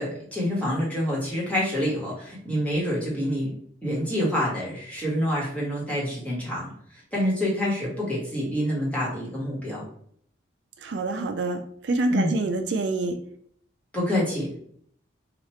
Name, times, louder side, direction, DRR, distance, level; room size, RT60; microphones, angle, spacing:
voice 1, 0.0-3.5 3.8-6.7 7.1-9.8 12.1-12.3 13.9-14.5, equal, 5° left, -5 dB, 1.2 m, -27 dB
voice 2, 10.8-13.2, right 2 dB, 65° right, 6 dB, 0.4 m, -26 dB
2.9 x 2.4 x 4.2 m, 0.63 s
head